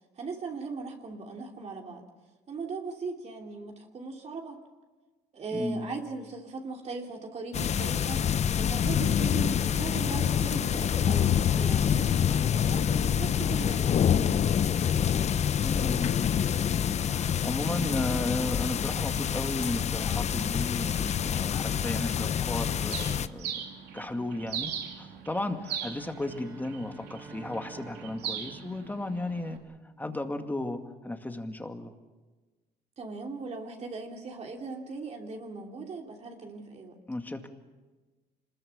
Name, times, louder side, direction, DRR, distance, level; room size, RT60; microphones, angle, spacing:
voice 1, 0.2-2.1 2.5-4.6 5.3-8.2 8.6-13.9 33.0-36.9, right 4 dB, 40° right, 1 dB, 3.0 m, -38 dB
voice 2, 5.5-6.0 14.1-14.5 15.6-16.2 17.0-23.6 23.9-29.6 30.0-31.9 37.1-37.5, left 2 dB, 10° left, 5 dB, 2.1 m, -34 dB
sound 1, 7.5-23.3, left 8 dB, 40° left, 0.7 m, -26 dB
Bird, 22.9-29.6, right 8 dB, 75° right, 2.7 m, -40 dB
Bowed string instrument, 25.9-30.1, right 3 dB, 15° right, 1.3 m, -50 dB
26.5 x 21.0 x 7.2 m, 1.3 s
cardioid pair, 110°, 17 cm